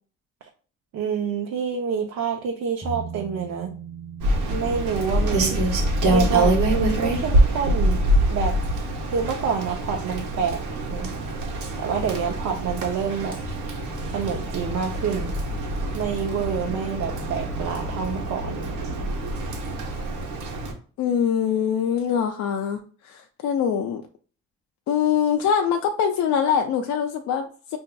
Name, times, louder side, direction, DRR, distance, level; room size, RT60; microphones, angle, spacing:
voice 1, 0.9-3.7 4.5-5.6 6.1-8.0 8.3-8.6 9.1-10.6 10.9-11.1 11.8-13.4 14.1-15.3 15.9-18.6, right 6 dB, 65° right, 2 dB, 0.6 m, -27 dB
sound 1, 2.8-11.9 12.2-12.3, right 5 dB, 15° right, 0.9 m, -41 dB
Rain, 4.2-20.7, right 1 dB, 80° right, 1.1 m, -25 dB
voice 2, 21.0-24.0 24.9-27.8, left 8 dB, 70° left, 5 dB, 0.5 m, -23 dB
5.4 x 2.6 x 2.2 m, 0.41 s
cardioid pair, 90°, 30 cm